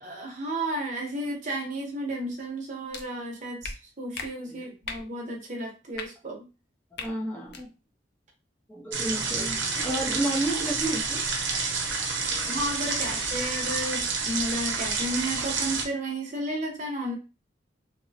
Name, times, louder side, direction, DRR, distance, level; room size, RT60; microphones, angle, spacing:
voice 1, 0.0-3.7 4.0-6.5 12.4-17.1, right 1 dB, 40° right, 0 dB, 0.8 m, -33 dB
sound 1, 2.9-3.0 3.6-3.7 4.1-4.3 4.8-5.0 5.9-6.1 6.9-7.1 7.5-7.6, left 4 dB, 60° left, 0.4 m, -36 dB
voice 2, 7.0-7.7 8.7-11.2 12.0-12.6, right 1 dB, 10° left, -4 dB, 0.5 m, -32 dB
sound 2, 8.9-15.9, right 4 dB, 85° right, 0.7 m, -29 dB
2.9 x 2.0 x 2.7 m, 0.30 s
head